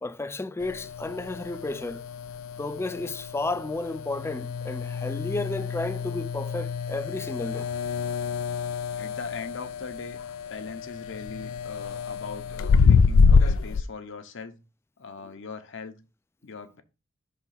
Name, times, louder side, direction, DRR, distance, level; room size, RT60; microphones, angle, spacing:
voice 1, 0.0-2.0 2.6-7.7, left 2 dB, 10° left, 0.3 m, -32 dB
sound 1, 0.6-13.8, left 5 dB, 90° left, 0.4 m, -26 dB
voice 2, 8.9-10.2 10.5-14.6 15.0-16.0 16.4-16.8, left 4 dB, 65° left, 0.8 m, -40 dB
5.7 x 3.6 x 5.7 m
head